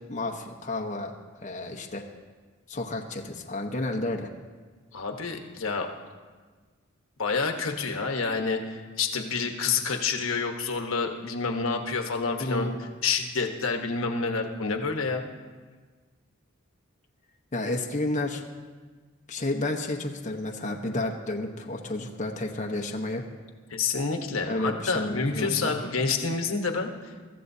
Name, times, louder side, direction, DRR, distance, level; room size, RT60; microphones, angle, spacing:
voice 1, 0.1-1.1 1.4-2.0 2.7-4.3 12.4-12.8 17.5-18.4 19.3-23.2 24.5-25.7, left 2 dB, 35° left, 1 dB, 1.0 m, -31 dB
voice 2, 4.9-5.9 7.2-15.2 23.7-27.1, left 4 dB, 75° left, 4 dB, 1.2 m, -28 dB
24.0 x 14.5 x 2.7 m, 1.4 s
head